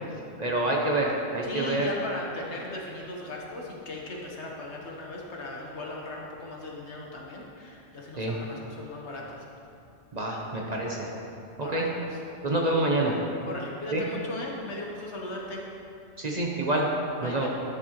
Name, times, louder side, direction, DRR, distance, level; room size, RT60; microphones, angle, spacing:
voice 1, 0.4-1.9 8.2-8.3 10.1-11.1 11.6-11.9 12.4-13.2 13.9-14.0 16.2-16.9 17.2-17.5, right 2 dB, 40° right, -1 dB, 0.8 m, -27 dB
voice 2, 1.4-9.4 10.8-10.9 11.6-12.2 13.5-15.6 17.2-17.5, left 2 dB, 70° left, -2 dB, 1.4 m, -37 dB
11.5 x 7.3 x 3.0 m, 2.7 s
omnidirectional pair, 1.2 m